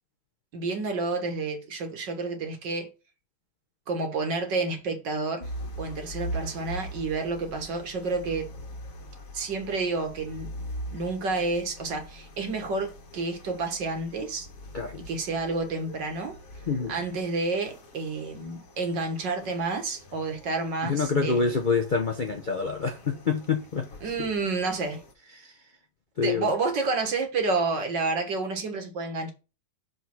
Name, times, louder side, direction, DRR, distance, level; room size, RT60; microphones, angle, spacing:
voice 1, 0.5-2.9 3.9-5.5 5.8-8.5 9.3-10.5 10.9-14.5 15.1-16.4 16.9-21.0 21.2-21.4 24.0-25.0 26.2-29.3, right 3 dB, 60° right, 2.2 m, -29 dB
sound 1, 5.4-25.1, equal, 45° left, 1.6 m, -42 dB
voice 2, 16.7-17.0 20.8-23.9 24.2-24.3 25.3-25.7 26.2-26.5, left 5 dB, 90° left, 0.4 m, -27 dB
6.1 x 5.4 x 4.6 m
omnidirectional pair, 2.2 m